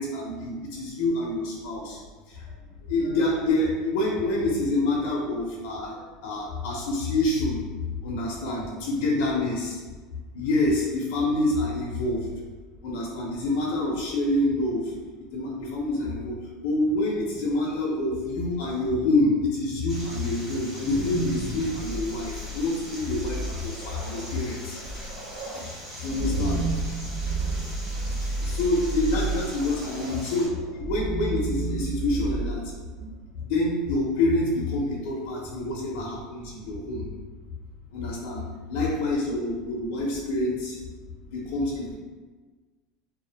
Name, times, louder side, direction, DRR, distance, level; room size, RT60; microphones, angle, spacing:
voice 1, 0.0-2.0 2.9-7.6 8.0-9.8 10.3-12.2 12.8-14.8 15.3-16.3 16.6-24.8 26.0-26.6 28.4-32.6 33.5-37.0 37.9-38.4 38.7-40.8 41.3-41.9, left 2 dB, 65° left, -3 dB, 0.4 m, -27 dB
sound 1, 19.9-30.5, equal, 20° right, 1.0 m, -42 dB
sound 2, 20.6-33.5, right 2 dB, 85° right, 0.4 m, -32 dB
2.3 x 2.0 x 2.7 m, 1.3 s
supercardioid pair, 160°, 0 cm